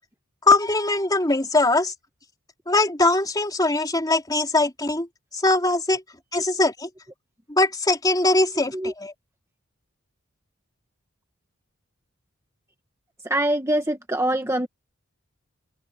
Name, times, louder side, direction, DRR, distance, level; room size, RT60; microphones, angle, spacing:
voice 1, 0.5-1.9 2.7-5.1 5.3-6.0 6.3-6.9 7.5-9.1, left 2 dB, 20° left, 3.6 m, -21 dB
voice 2, 13.2-14.7, right 1 dB, 15° right, 1.3 m, -24 dB
open air
head